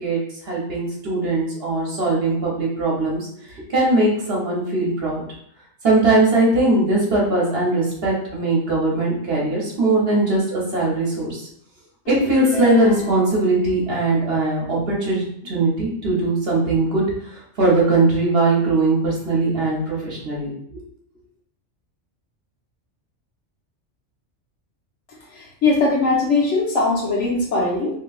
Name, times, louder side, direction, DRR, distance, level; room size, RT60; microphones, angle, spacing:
voice 1, 0.0-5.2 5.8-11.5 12.1-20.8, right 2 dB, 60° right, -4 dB, 1.2 m, -20 dB
sound 1, 12.0-13.5, left 2 dB, 70° left, 1.3 m, -32 dB
voice 2, 25.3-28.0, left 3 dB, 90° left, -4 dB, 1.3 m, -20 dB
3.0 x 3.0 x 2.4 m, 0.69 s
omnidirectional pair, 1.2 m